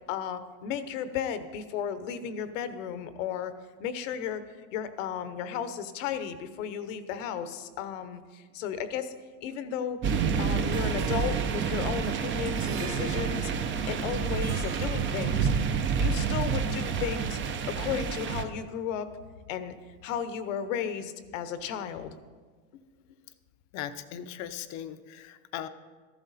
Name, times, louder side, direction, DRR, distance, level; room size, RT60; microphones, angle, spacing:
voice 1, 0.1-3.5 3.8-4.4 4.7-9.1 9.4-10.0 10.4-13.5 13.9-15.5 16.0-17.4 17.7-19.1 19.5-19.7 20.0-22.2, left 8 dB, 70° left, 11 dB, 1.1 m, -34 dB
sound 1, 10.0-18.4, right 6 dB, 30° right, 0.8 m, -28 dB
Harp, 10.7-15.7, right 5 dB, 45° right, 2.0 m, -44 dB
voice 2, 23.7-25.7, left 10 dB, 45° left, 11 dB, 0.7 m, -38 dB
14.0 x 11.5 x 4.1 m, 1.5 s
supercardioid pair, 125°, 39 cm